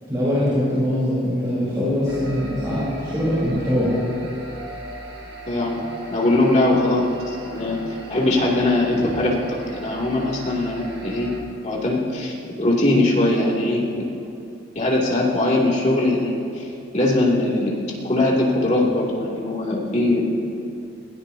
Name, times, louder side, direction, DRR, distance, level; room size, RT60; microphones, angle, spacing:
voice 1, 0.0-3.9, equal, 20° right, -11 dB, 4.1 m, -22 dB
sound 1, 2.1-11.4, right 1 dB, 55° right, 2.0 m, -38 dB
voice 2, 5.5-5.8 6.1-7.8 8.1-11.3 11.6-14.1 14.7-16.7 16.9-17.8 18.0-20.2, left 2 dB, 35° left, -5 dB, 2.8 m, -21 dB
21.5 x 17.0 x 2.9 m, 2.6 s
head